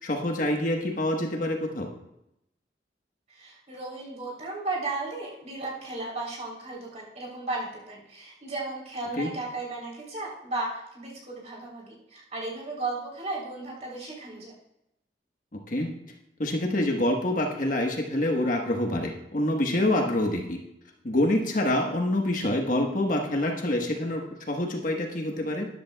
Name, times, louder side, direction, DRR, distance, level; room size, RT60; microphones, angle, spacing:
voice 1, 0.0-1.9 9.2-9.3 15.5-15.9 16.4-20.6 21.0-25.7, left 1 dB, 50° left, 2 dB, 1.3 m, -26 dB
voice 2, 3.3-14.5, right 2 dB, 40° right, -4 dB, 3.5 m, -35 dB
13.0 x 11.0 x 2.3 m, 0.83 s
head